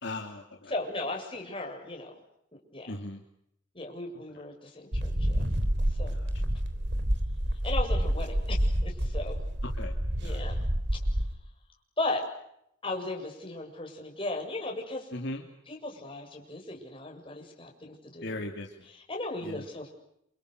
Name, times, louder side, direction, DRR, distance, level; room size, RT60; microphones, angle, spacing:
voice 1, 0.0-0.4 2.9-3.2 9.8-9.9 10.2-10.4 15.1-15.4 18.2-18.7 19.4-19.6, left 2 dB, 60° left, 2 dB, 2.9 m, -37 dB
voice 2, 0.7-2.1 2.7-2.9 3.7-5.5 6.0-6.2 7.6-9.4 10.2-10.6 12.0-12.2 12.8-15.1 15.7-18.5 18.8-19.9, left 2 dB, 25° left, 1 dB, 7.5 m, -36 dB
sound 1, 4.9-11.3, equal, 60° right, 3.7 m, -28 dB
29.5 x 28.5 x 6.7 m, 0.76 s
head